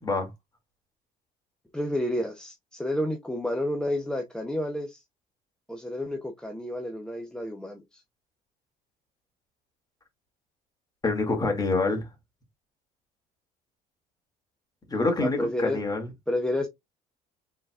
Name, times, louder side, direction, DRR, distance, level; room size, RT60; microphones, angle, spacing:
voice 1, 1.7-5.0 5.7-8.0 15.2-15.8 16.3-16.7, left 1 dB, 5° left, 0.8 m, -30 dB
voice 2, 11.0-12.1 14.9-16.1, left 3 dB, 20° left, 2.3 m, -26 dB
5.6 x 4.0 x 2.4 m
cardioid pair, 110°, 17 cm